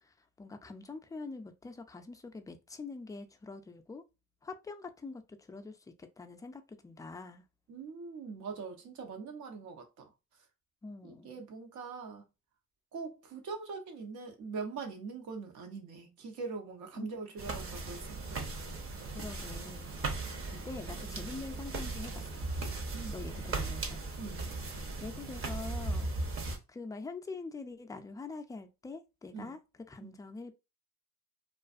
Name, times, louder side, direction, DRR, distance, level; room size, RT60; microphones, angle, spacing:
voice 1, 0.0-4.0 4.4-7.4 10.8-11.4 17.0-17.1 19.1-20.2 20.5-22.5 23.1-24.0 24.5-26.1 26.7-29.6 29.9-30.5, left 3 dB, 10° left, 0.3 m, -45 dB
voice 2, 7.7-10.0 11.0-12.2 12.9-18.4 22.9-23.6 24.2-24.5 29.3-29.6 30.0-30.2, right 4 dB, 75° right, 0.9 m, -42 dB
sound 1, 17.4-26.6, right 3 dB, 45° right, 0.8 m, -37 dB
2.4 x 2.4 x 2.3 m
cardioid pair, 90°, 30 cm